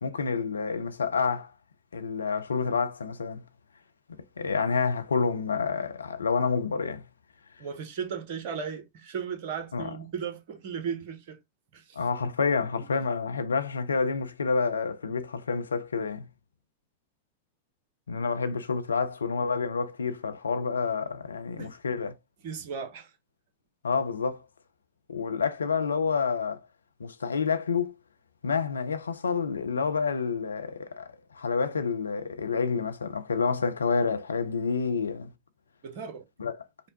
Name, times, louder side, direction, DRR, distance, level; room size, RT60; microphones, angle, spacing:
voice 1, 0.0-1.5 1.9-3.4 4.4-7.0 9.7-9.9 12.0-16.3 18.1-22.1 23.8-24.5 25.1-26.6 27.0-27.9 28.4-31.1 31.3-35.3 36.4-36.6, left 5 dB, 75° left, 0.4 m, -28 dB
voice 2, 7.6-11.4 11.7-12.0 21.6-21.8 22.4-23.1 35.8-36.2, right 7 dB, 50° right, 0.7 m, -36 dB
5.1 x 2.1 x 2.8 m
figure-of-eight pair, 90°, 0 cm